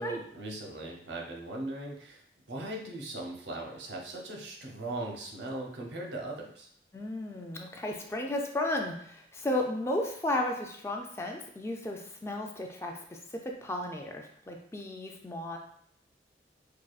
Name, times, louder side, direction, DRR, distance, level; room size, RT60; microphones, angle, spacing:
voice 1, 0.0-2.2 2.5-6.7, right 2 dB, 90° right, 0 dB, 0.8 m, -39 dB
voice 2, 6.9-13.2 13.6-15.6, left 1 dB, 15° left, 1 dB, 0.3 m, -34 dB
4.7 x 2.3 x 2.4 m, 0.63 s
head